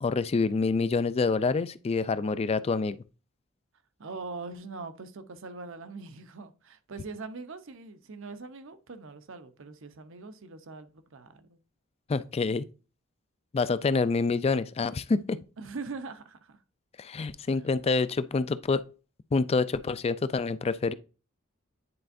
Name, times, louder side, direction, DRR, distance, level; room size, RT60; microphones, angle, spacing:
voice 1, 0.0-3.0 12.1-12.6 13.5-15.4 17.0-18.8 19.3-20.9, left 4 dB, 30° left, 0.3 m, -27 dB
voice 2, 4.0-11.6 15.6-16.6 17.5-17.7, right 3 dB, 65° right, 0.7 m, -42 dB
9.7 x 4.4 x 2.6 m
head